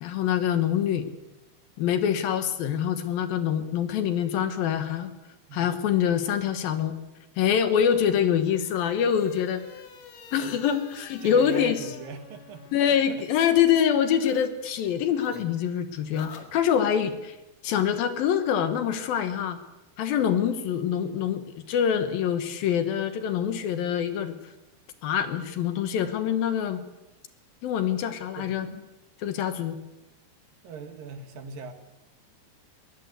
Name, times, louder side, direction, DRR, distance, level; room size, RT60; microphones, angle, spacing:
voice 1, 0.0-1.1 1.8-5.1 5.5-6.9 7.4-9.6 10.3-11.8 12.7-17.4 17.6-19.6 20.0-24.4 25.0-26.8 27.6-28.7 29.2-29.8, left 9 dB, 70° left, 10 dB, 2.9 m, -25 dB
sound 1, 7.9-14.5 14.8-17.0, left 6 dB, 55° left, 2.7 m, -48 dB
voice 2, 11.2-13.3 28.4-28.5 30.6-31.7, right 5 dB, 65° right, 7 dB, 3.3 m, -40 dB
21.5 x 18.5 x 8.0 m, 0.95 s
omnidirectional pair, 4.6 m